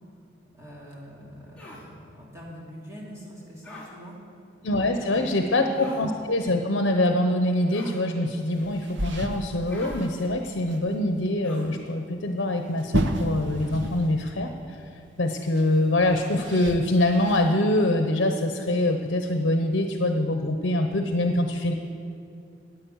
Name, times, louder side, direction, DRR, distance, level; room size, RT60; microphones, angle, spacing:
voice 1, 0.5-4.2 4.8-5.8, equal, 15° right, -5 dB, 2.6 m, -43 dB
sound 1, 1.6-1.8 3.6-3.9 5.7-6.1 7.7-8.0 9.7-10.0 11.4-11.8, left 1 dB, 5° left, 2.9 m, -43 dB
voice 2, 4.6-14.8 15.2-21.7, left 1 dB, 70° left, 5 dB, 0.9 m, -24 dB
sound 2, 8.4-10.4 10.6-10.8 11.1-11.2 12.7-14.3 14.6-14.7 15.6-17.5, right 1 dB, 70° right, 1.1 m, -31 dB
14.0 x 9.6 x 8.0 m, 2.5 s
head